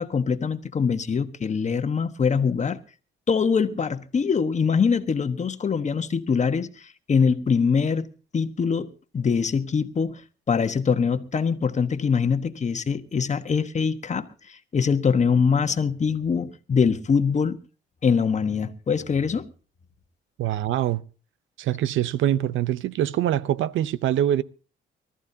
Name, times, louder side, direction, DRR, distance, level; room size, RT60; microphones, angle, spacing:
voice 1, 0.0-2.8 3.3-8.1 8.3-8.9 9.1-10.2 10.5-17.6 18.0-19.5, left 6 dB, 35° left, 1.3 m, -23 dB
voice 2, 20.4-21.0 21.6-24.4, right 11 dB, 80° right, 0.7 m, -24 dB
23.5 x 14.0 x 2.8 m
cardioid pair, 90°, 20 cm